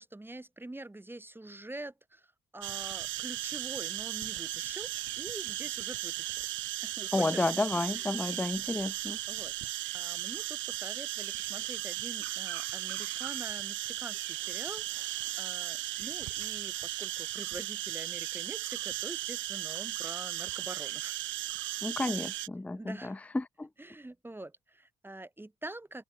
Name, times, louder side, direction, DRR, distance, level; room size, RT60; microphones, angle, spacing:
voice 1, 0.0-6.5 6.8-7.5 7.9-8.1 9.3-9.5 9.9-21.2 22.8-23.2 23.8-26.0, right 2 dB, 10° right, 2.0 m, -45 dB
sound 1, 2.6-22.5, right 16 dB, 75° right, 0.5 m, -36 dB
voice 2, 7.1-9.2 21.8-23.7, left 2 dB, 5° left, 0.4 m, -31 dB
open air
cardioid pair, 90°, 20 cm